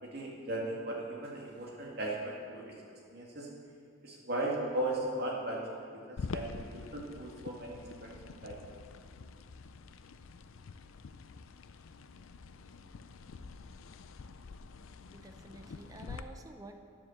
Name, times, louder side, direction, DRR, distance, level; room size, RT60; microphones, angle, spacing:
voice 1, 0.0-2.8 3.1-3.5 4.0-8.1 8.4-8.6, right 1 dB, 50° right, -2 dB, 1.9 m, -37 dB
night rain, 6.2-16.2, left 4 dB, 75° left, 0.5 m, -46 dB
voice 2, 15.1-16.8, right 2 dB, 15° right, 6 dB, 0.6 m, -50 dB
9.9 x 7.5 x 7.0 m, 2.3 s
head